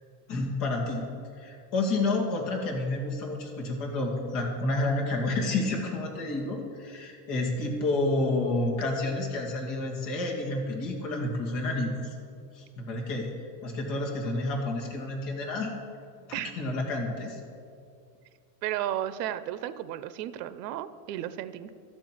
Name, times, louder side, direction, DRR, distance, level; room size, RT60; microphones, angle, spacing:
voice 1, 0.3-1.1 1.4-12.1 12.5-13.3 13.6-15.7 16.3-17.4, left 2 dB, 40° left, 0 dB, 2.1 m, -30 dB
voice 2, 18.6-21.7, right 12 dB, 85° right, 14 dB, 0.7 m, -33 dB
13.0 x 4.5 x 8.4 m, 2.4 s
supercardioid pair, 160°, 47 cm